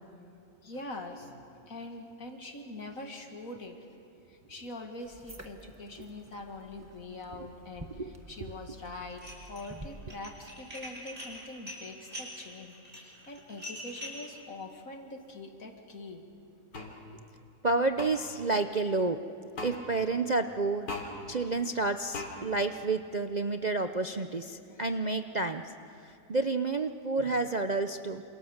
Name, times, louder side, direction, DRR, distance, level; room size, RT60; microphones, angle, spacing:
voice 1, 0.6-3.8 4.3-9.2 9.5-16.3 24.6-24.8 27.2-27.3, left 2 dB, 50° left, 4 dB, 2.6 m, -44 dB
sound 1, 5.0-10.3, right 1 dB, 10° right, 1.3 m, -50 dB
voice 2, 8.0-8.5 17.6-19.2 19.6-20.9 21.3-25.7 26.0-28.2, right 3 dB, 60° right, 7 dB, 0.4 m, -30 dB
Dishes pots and pans, 9.1-9.7 10.0-14.3, left 1 dB, 30° right, 6.3 m, -43 dB
sound 2, 16.7-16.9 18.0-18.1 19.6-19.7 20.9-21.1 22.1-22.3, left 3 dB, 75° left, 3.7 m, -37 dB
28.0 x 28.0 x 7.3 m, 2.7 s
omnidirectional pair, 1.9 m